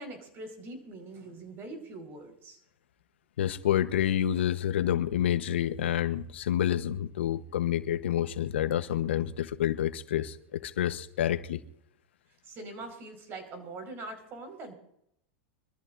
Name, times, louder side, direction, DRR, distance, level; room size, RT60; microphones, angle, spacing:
voice 1, 0.0-2.6 12.4-14.7, right 2 dB, 40° right, 4.8 m, -43 dB
voice 2, 3.4-11.6, left 10 dB, 90° left, 1.0 m, -28 dB
25.0 x 14.0 x 2.6 m
supercardioid pair, 125°, 6 cm